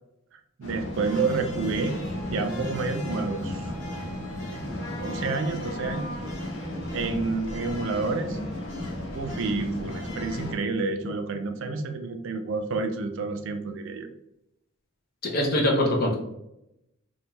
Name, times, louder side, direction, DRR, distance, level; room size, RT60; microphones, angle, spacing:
voice 1, 0.3-2.0 2.3-3.7 4.5-4.7 5.0-6.1 6.9-8.4 9.1-14.1, right 3 dB, 65° right, 7 dB, 0.3 m, -29 dB
sound 1, 0.6-10.5, left 1 dB, 70° left, 1.0 m, -34 dB
voice 2, 15.2-16.1, left 1 dB, 45° left, 0 dB, 0.6 m, -23 dB
2.5 x 2.2 x 3.0 m, 0.86 s
head